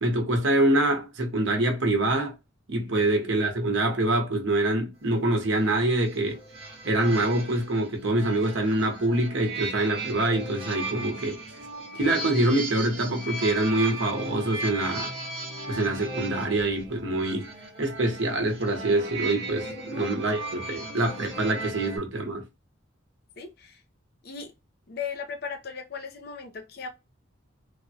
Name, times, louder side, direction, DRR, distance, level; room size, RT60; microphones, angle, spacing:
voice 1, 0.0-2.3 2.7-6.4 6.8-11.4 11.9-15.1 15.7-17.5 17.8-22.4, right 1 dB, 60° right, 0.8 m, -25 dB
sound 1, 5.4-22.0, right 2 dB, 25° right, 0.9 m, -37 dB
voice 2, 19.7-20.1 23.4-23.8 24.2-24.5 24.9-26.9, left 5 dB, 50° left, 0.6 m, -37 dB
3.3 x 2.2 x 2.6 m
head